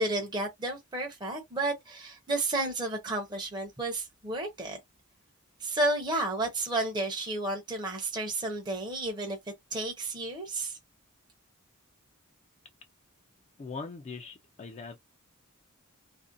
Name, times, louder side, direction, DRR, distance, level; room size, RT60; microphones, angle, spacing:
voice 1, 0.0-4.8 5.6-9.4 9.7-10.8, right 2 dB, 20° right, 0.6 m, -32 dB
voice 2, 13.6-15.0, left 4 dB, 30° left, 0.3 m, -41 dB
2.5 x 2.1 x 2.5 m
head